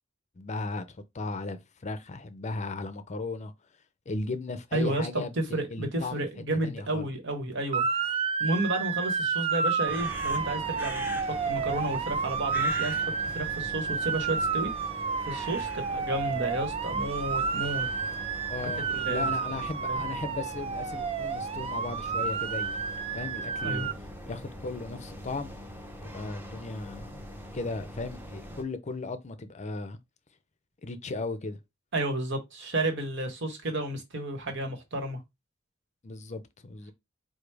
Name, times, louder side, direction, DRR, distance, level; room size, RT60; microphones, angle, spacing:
voice 1, 0.4-3.5 4.1-6.3 6.6-7.1 18.5-22.8 23.1-23.9 24.3-25.5 26.0-27.3 27.5-30.0 30.8-31.6 36.0-36.9, left 3 dB, 35° left, 0.6 m, -36 dB
voice 2, 4.7-5.1 5.4-8.1 8.4-14.9 15.3-17.9 18.9-19.3 19.8-20.0 23.6-23.9 31.9-35.2, right 1 dB, 65° right, 1.3 m, -32 dB
Motor vehicle (road) / Siren, 7.7-23.9, right 5 dB, 30° right, 0.4 m, -31 dB
sound 1, 9.9-28.6, equal, 10° right, 0.7 m, -42 dB
5.0 x 2.0 x 4.7 m
head